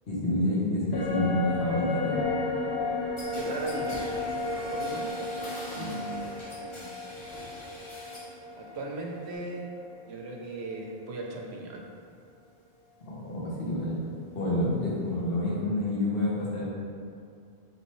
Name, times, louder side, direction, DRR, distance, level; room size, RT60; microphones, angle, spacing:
voice 1, 0.1-2.2 5.8-5.9 13.0-16.6, left 1 dB, 65° left, -6 dB, 1.2 m, -28 dB
sound 1, 0.9-10.4 10.7-10.8, left 3 dB, 80° left, 0.9 m, -34 dB
sound 2, 3.2-8.4 8.7-9.4, left 1 dB, 30° left, 0.8 m, -45 dB
voice 2, 3.3-5.1 5.7-6.9 8.6-9.7 10.1-11.9, right 2 dB, 90° right, 0 dB, 0.9 m, -38 dB
4.2 x 3.2 x 3.1 m, 2.4 s
omnidirectional pair, 1.1 m